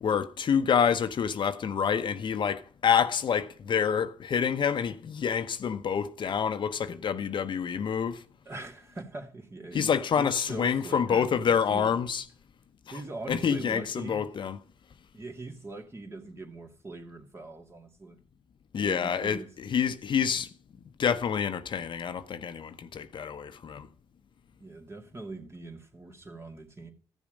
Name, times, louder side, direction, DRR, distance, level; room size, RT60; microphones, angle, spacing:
voice 1, 0.0-8.2 9.7-12.2 13.3-14.6 18.7-20.5 21.0-23.9, left 7 dB, 60° left, 0.9 m, -27 dB
voice 2, 8.5-11.9 12.9-14.3 15.1-18.2 18.8-19.5 24.6-26.9, right 2 dB, 30° right, 2.5 m, -42 dB
14.5 x 7.1 x 5.2 m
cardioid pair, 75°, 9 cm